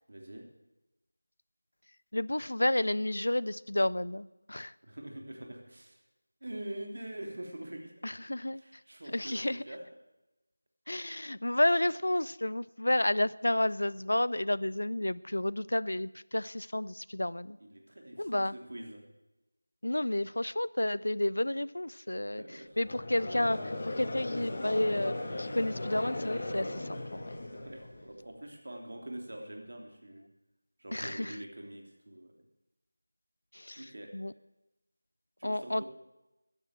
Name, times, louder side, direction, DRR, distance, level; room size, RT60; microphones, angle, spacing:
voice 1, 0.1-0.5 4.8-6.0 6.4-7.9 8.5-9.8 17.6-19.0 22.3-23.0 27.5-30.2 30.8-32.4 33.8-34.1 35.4-35.8, right 1 dB, 60° right, 2 dB, 3.0 m, -44 dB
voice 2, 2.1-4.7 8.0-8.6 9.1-9.6 10.9-17.6 18.2-18.5 19.8-22.4 22.8-27.4 30.9-31.3 33.5-33.8 34.1-34.3 35.4-35.8, left 1 dB, 75° left, 20 dB, 0.5 m, -31 dB
Conversation / Crowd, 22.8-28.1, left 2 dB, 35° left, 2.4 m, -37 dB
13.5 x 11.0 x 7.6 m, 1.0 s
figure-of-eight pair, 170°, 0 cm